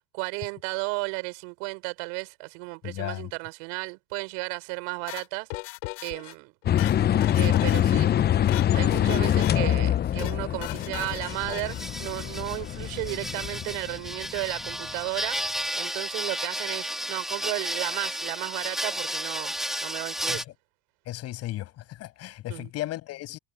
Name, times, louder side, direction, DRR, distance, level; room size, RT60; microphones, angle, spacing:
voice 1, 0.1-5.5 6.0-6.5 7.4-8.1 8.7-15.5 15.7-19.5 19.8-20.4 22.5-22.7, right 34 dB, 75° right, 6.5 m, -34 dB
voice 2, 2.8-3.3 20.3-20.5 21.1-23.4, left 15 dB, 55° left, 6.4 m, -35 dB
sound 1, 5.1-6.3 6.6-8.0 8.3-8.7 8.9-9.8 10.0-10.4 10.6-11.9, left 24 dB, 80° left, 4.0 m, -38 dB
sound 2, 6.7-14.7, left 11 dB, 35° left, 0.8 m, -25 dB
sound 3, 11.3-20.4, equal, ahead, 2.5 m, -33 dB
supercardioid pair, 95°, 29 cm